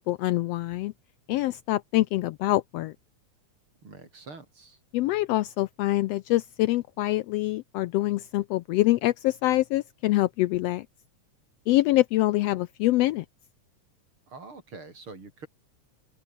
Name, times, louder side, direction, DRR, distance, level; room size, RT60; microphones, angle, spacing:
voice 1, 0.1-0.9 1.3-2.9 4.9-10.9 11.7-13.2, left 17 dB, 85° left, 1.4 m, -25 dB
voice 2, 3.8-4.8 14.3-15.5, right 3 dB, 45° right, 6.1 m, -45 dB
open air
omnidirectional pair, 3.4 m